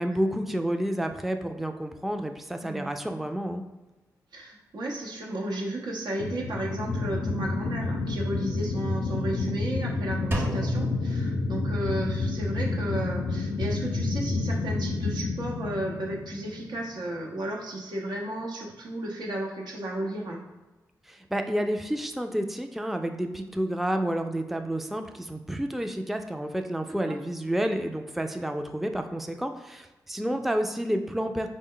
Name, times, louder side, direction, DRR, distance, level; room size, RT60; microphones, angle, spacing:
voice 1, 0.0-3.6 21.1-31.5, right 1 dB, 5° right, 6 dB, 0.3 m, -30 dB
voice 2, 4.3-20.4 26.9-27.1 30.2-30.4, right 1 dB, 80° right, -2 dB, 0.8 m, -34 dB
sound 1, 6.2-17.1, left 3 dB, 80° left, 0.3 m, -30 dB
Drum, 10.3-12.2, equal, 30° right, 0.8 m, -31 dB
4.1 x 2.1 x 3.7 m, 1.1 s
cardioid pair, 50°, 7 cm